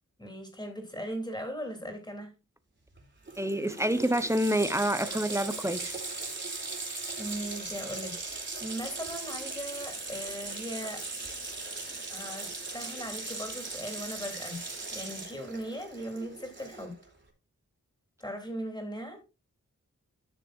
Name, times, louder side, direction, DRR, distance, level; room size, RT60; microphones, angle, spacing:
voice 1, 0.2-2.3 7.2-11.1 12.1-17.0 18.2-19.2, equal, 15° left, 3.2 m, -39 dB
Water tap faucet, 3.0-3.1 3.3-17.0, right 3 dB, 35° right, 3.0 m, -39 dB
voice 2, 3.4-6.0, right 1 dB, 10° right, 0.9 m, -28 dB
13.5 x 6.5 x 2.5 m
wide cardioid pair, 90°, 31 cm